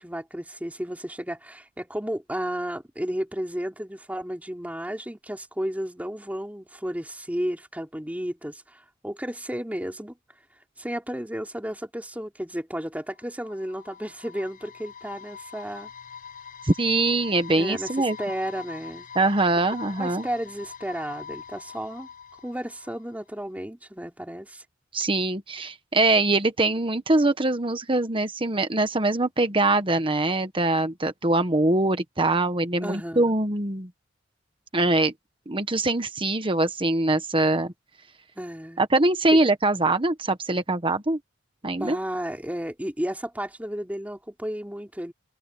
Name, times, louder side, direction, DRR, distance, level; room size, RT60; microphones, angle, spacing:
voice 1, 0.0-10.2 10.8-15.9 17.6-19.1 20.0-22.1 22.4-24.6 32.8-33.3 38.3-38.8 39.3-39.4 41.8-45.1, equal, 10° right, 3.3 m, -33 dB
sound 1, 13.2-23.2, left 6 dB, 45° left, 5.3 m, -43 dB
voice 2, 16.6-18.2 19.1-20.3 24.9-33.9 34.7-35.1 35.5-37.7 38.8-41.2 41.6-42.0, right 2 dB, 25° right, 1.3 m, -23 dB
open air
head